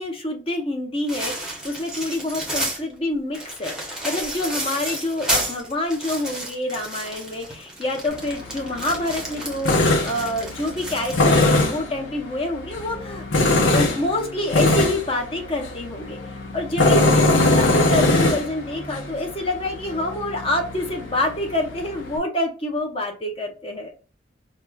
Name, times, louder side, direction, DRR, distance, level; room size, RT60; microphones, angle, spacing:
voice 1, 0.0-13.3 13.7-23.9, left 1 dB, 30° left, 2 dB, 0.7 m, -27 dB
sound 1, 1.1-2.8 3.3-11.5, right 1 dB, 5° right, 0.7 m, -31 dB
Tools, 8.1-22.2, left 2 dB, 80° left, 0.7 m, -22 dB
4.7 x 2.1 x 2.3 m, 0.35 s
head